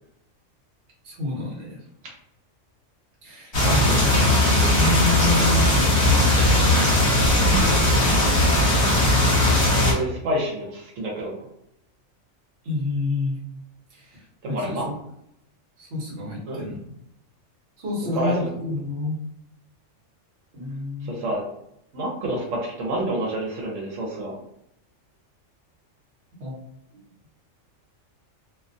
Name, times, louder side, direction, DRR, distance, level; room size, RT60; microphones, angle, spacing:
voice 1, 1.0-1.8 3.2-4.0 4.5-6.7 12.6-13.4 13.9-14.9 15.8-16.8 17.8-19.2 20.5-21.2 26.4-26.5, left 2 dB, 50° right, -3 dB, 1.0 m, -29 dB
sound 1, 3.5-9.9, left 1 dB, 40° left, 0.9 m, -18 dB
voice 2, 3.7-4.0 9.8-11.4 14.4-14.9 16.5-16.6 18.1-18.3 21.0-21.4 21.9-24.4, right 1 dB, 80° right, -3 dB, 1.0 m, -28 dB
2.4 x 2.2 x 2.5 m, 0.78 s
omnidirectional pair, 1.3 m